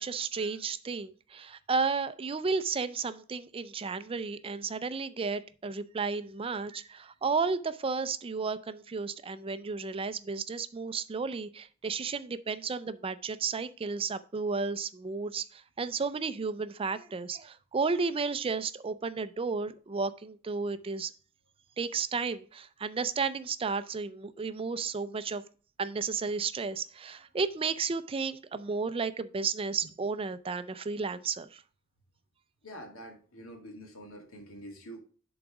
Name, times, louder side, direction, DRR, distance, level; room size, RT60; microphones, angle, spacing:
voice 1, 0.0-21.1 21.8-25.4 25.8-31.6, right 4 dB, 25° right, 0.4 m, -33 dB
voice 2, 32.6-35.0, equal, 90° left, 2.1 m, -46 dB
10.5 x 4.0 x 4.8 m
head